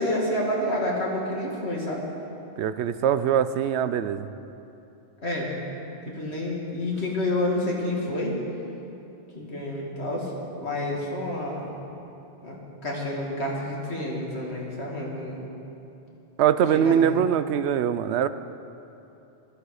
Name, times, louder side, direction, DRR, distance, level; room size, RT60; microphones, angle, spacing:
voice 1, 0.0-2.0 5.2-5.5 6.1-8.4 9.3-10.3 10.6-11.7 12.4-12.6 12.8-15.4 16.7-17.0, left 1 dB, 80° left, -3 dB, 2.6 m, -29 dB
voice 2, 2.6-4.3 16.4-18.3, right 9 dB, 85° right, 13 dB, 0.9 m, -22 dB
15.5 x 13.0 x 4.9 m, 2.8 s
omnidirectional pair, 1.1 m